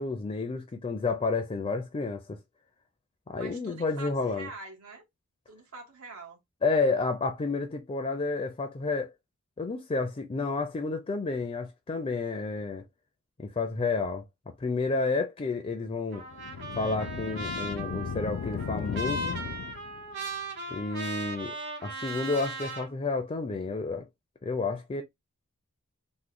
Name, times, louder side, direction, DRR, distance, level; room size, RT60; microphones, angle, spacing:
voice 1, 0.0-2.4 3.3-4.5 6.6-9.1 9.6-12.9 13.4-16.2 16.8-19.4 20.7-21.6 21.8-24.1 24.4-25.0, left 3 dB, 25° left, 0.4 m, -30 dB
voice 2, 3.3-5.0 5.5-6.4, right 4 dB, 85° right, 1.1 m, -45 dB
Trumpet, 16.1-22.9, right 2 dB, 55° right, 1.4 m, -37 dB
sound 1, 16.3-20.1, left 6 dB, 90° left, 0.4 m, -36 dB
3.1 x 2.1 x 3.7 m
head